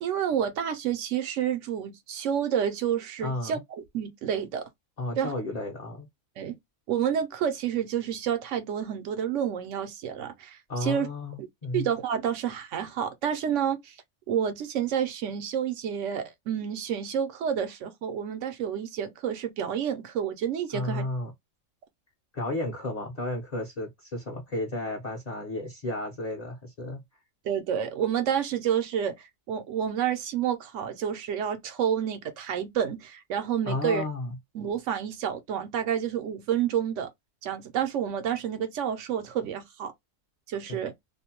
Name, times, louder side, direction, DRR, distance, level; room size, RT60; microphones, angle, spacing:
voice 1, 0.0-3.6 3.9-4.6 5.2-5.3 6.4-6.6 6.9-11.1 11.7-14.0 14.3-21.1 27.4-29.1 29.5-34.0 34.5-37.1 37.4-39.9 40.5-40.9, right 9 dB, 75° right, 0.9 m, -29 dB
voice 2, 3.2-3.6 5.0-6.1 10.7-11.9 20.7-21.3 22.3-27.0 33.7-34.3 40.7-40.8, left 2 dB, 40° left, 0.7 m, -33 dB
2.5 x 2.1 x 2.8 m
omnidirectional pair, 1.3 m